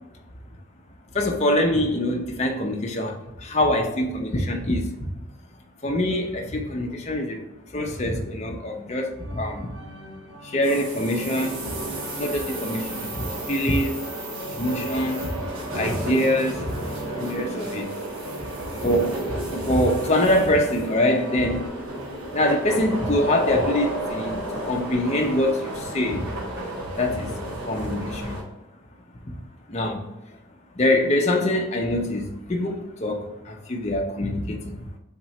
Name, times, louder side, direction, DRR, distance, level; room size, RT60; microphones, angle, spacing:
voice 1, 1.1-5.1 5.8-7.4 7.7-9.7 10.4-11.8 12.2-14.0 14.5-15.4 15.7-16.8 17.1-17.9 18.8-21.8 22.3-26.3 27.0-28.4 29.3-29.4 29.7-30.1 30.8-34.8, left 1 dB, 30° left, 0.6 m, -24 dB
sound 1, 9.2-21.7, equal, 65° right, 0.9 m, -40 dB
sound 2, 10.6-28.4, right 1 dB, 90° right, 1.2 m, -32 dB
3.6 x 3.0 x 4.2 m
head